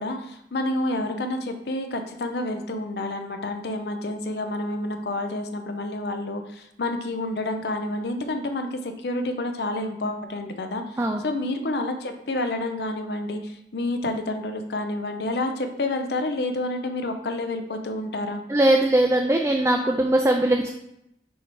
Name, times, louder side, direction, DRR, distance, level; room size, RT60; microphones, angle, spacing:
voice 1, 0.0-18.4, left 2 dB, 70° left, 6 dB, 0.6 m, -29 dB
voice 2, 18.5-20.7, right 1 dB, 15° right, 2 dB, 0.4 m, -20 dB
6.2 x 3.3 x 4.7 m, 0.80 s
head